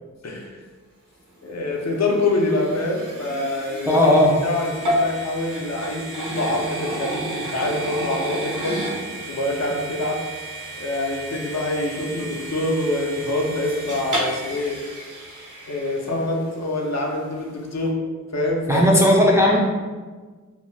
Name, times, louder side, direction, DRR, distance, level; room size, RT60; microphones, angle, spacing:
voice 1, 0.2-0.6 1.4-8.8 9.3-10.3 10.8-14.8 15.7-18.0 18.3-18.9, left 2 dB, 60° left, 0 dB, 0.5 m, -25 dB
sound 1, 1.4-16.6, right 1 dB, 75° right, 0.7 m, -32 dB
voice 2, 3.9-4.3 18.7-19.6, left 1 dB, 10° right, -3 dB, 0.3 m, -15 dB
2.5 x 2.2 x 3.1 m, 1.4 s
wide cardioid pair, 80°, 31 cm